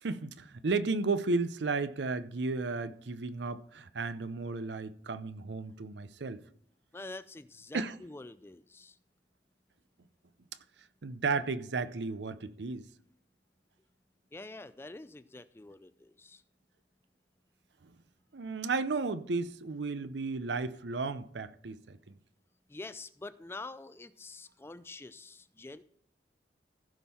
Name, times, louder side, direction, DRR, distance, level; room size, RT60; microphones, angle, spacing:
voice 1, 0.0-6.4 7.7-7.9 11.0-12.9 17.8-17.9 18.3-22.1, right 3 dB, 80° right, 0.6 m, -34 dB
voice 2, 6.9-9.0 14.3-16.4 22.7-25.8, left 2 dB, 15° left, 0.3 m, -46 dB
15.5 x 5.5 x 4.3 m
head